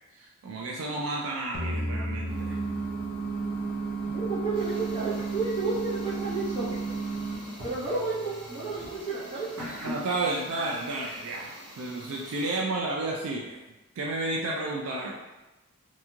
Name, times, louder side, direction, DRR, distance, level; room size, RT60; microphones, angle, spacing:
voice 1, 0.1-2.6 9.8-13.6 14.0-15.1, right 2 dB, 65° right, -2 dB, 0.3 m, -31 dB
sound 1, 1.5-4.8, equal, 40° left, 0.4 m, -35 dB
sound 2, 2.3-11.5, right 4 dB, 85° right, 1.0 m, -34 dB
voice 2, 4.0-6.8 7.6-9.5, right 3 dB, 25° right, -10 dB, 1.0 m, -31 dB
sound 3, 4.5-12.6, equal, 5° left, 0.8 m, -48 dB
2.9 x 2.6 x 2.3 m, 1.1 s
head